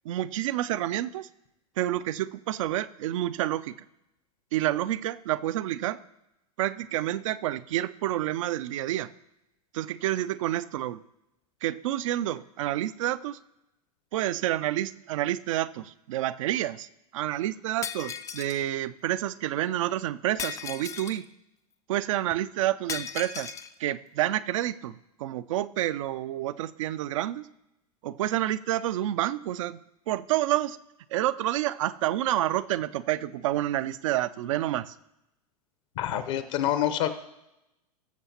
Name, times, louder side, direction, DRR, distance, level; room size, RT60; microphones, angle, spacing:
voice 1, 0.0-1.3 1.8-3.7 4.5-6.0 6.6-9.1 9.7-11.0 11.6-13.4 14.1-21.3 21.9-23.5 23.8-27.5 28.0-29.8 30.1-30.8 31.1-34.9, right 14 dB, 50° right, 15 dB, 0.4 m, -29 dB
Shatter, 17.8-18.6 20.4-21.2 22.9-23.7, left 7 dB, 15° left, 0.4 m, -36 dB
voice 2, 36.0-37.1, left 11 dB, 50° left, 11 dB, 0.8 m, -27 dB
20.5 x 7.0 x 2.8 m, 0.90 s
figure-of-eight pair, 90°, 21 cm